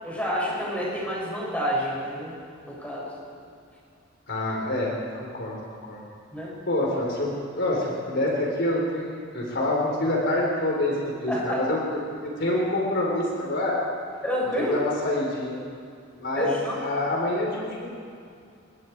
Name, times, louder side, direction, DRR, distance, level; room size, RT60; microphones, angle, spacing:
voice 1, 0.0-2.3 2.7-3.1 6.3-6.5 11.3-11.6 14.2-14.8 16.3-16.8, equal, 5° left, -5 dB, 7.2 m, -28 dB
voice 2, 4.3-5.6 5.8-6.0 6.7-13.8 14.6-15.6 16.2-17.9, left 1 dB, 60° left, -2 dB, 4.3 m, -27 dB
27.0 x 22.0 x 4.8 m, 2.4 s
head